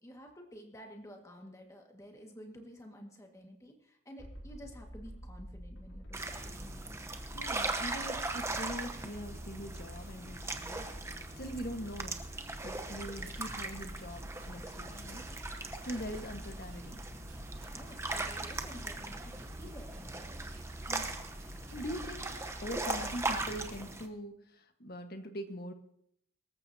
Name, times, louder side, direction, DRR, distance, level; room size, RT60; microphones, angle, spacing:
voice 1, 0.0-7.0 17.7-20.4, equal, 15° left, 2 dB, 1.9 m, -51 dB
sound 1, 4.2-23.9, equal, 70° left, 3.6 m, -47 dB
sound 2, 6.1-24.1, right 2 dB, 15° right, 0.9 m, -40 dB
voice 2, 7.3-10.8 11.4-12.2 12.6-15.2 15.8-17.0 20.9-21.1 21.6-22.2 22.6-25.7, equal, 50° left, 6 dB, 1.5 m, -42 dB
Rattle, 12.6-22.3, right 5 dB, 70° right, 7.0 m, -63 dB
24.0 x 14.0 x 2.8 m, 0.69 s
head